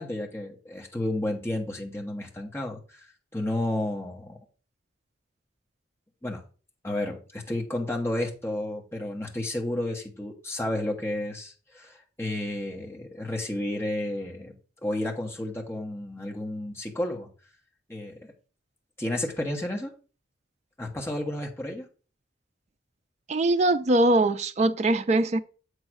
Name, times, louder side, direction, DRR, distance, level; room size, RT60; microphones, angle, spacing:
voice 1, 0.0-3.1 3.3-4.4 6.2-6.4 6.8-14.5 14.8-17.3 17.9-18.3 19.0-19.9 20.8-21.9, left 1 dB, 15° left, 1.1 m, -31 dB
voice 2, 23.3-25.4, right 2 dB, 35° right, 0.4 m, -22 dB
7.5 x 3.1 x 6.1 m
head